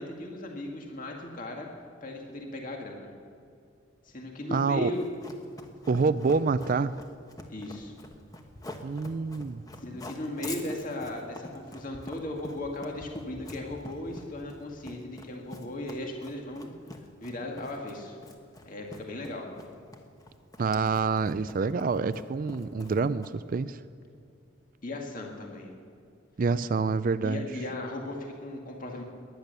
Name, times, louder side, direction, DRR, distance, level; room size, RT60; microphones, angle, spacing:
voice 1, 0.0-1.7 2.0-3.1 4.1-5.0 7.5-7.9 9.8-16.7 17.2-18.2 18.7-19.5 24.8-25.7 27.2-29.0, left 1 dB, 45° left, 1 dB, 2.0 m, -37 dB
voice 2, 4.5-4.9 5.9-7.0 8.8-9.6 20.6-23.8 26.4-27.4, right 4 dB, 45° right, 14 dB, 0.4 m, -27 dB
Run, 4.9-23.5, left 1 dB, 20° left, 1.2 m, -45 dB
20.0 x 10.5 x 6.8 m, 2.5 s
head